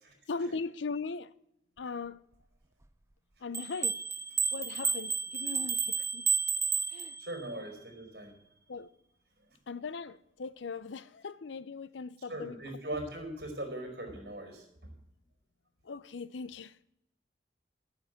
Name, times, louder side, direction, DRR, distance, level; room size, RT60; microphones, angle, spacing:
voice 1, 0.3-1.3 1.8-2.2 3.4-4.0 4.5-6.3 6.9-7.2 8.7-8.9 9.7-12.6 15.8-16.7, left 4 dB, 85° left, 0.6 m, -39 dB
sound 1, 3.5-7.5, right 5 dB, 15° right, 0.4 m, -31 dB
voice 2, 7.2-8.3 12.3-14.9, right 1 dB, 60° right, 4.5 m, -40 dB
12.5 x 9.5 x 7.7 m
head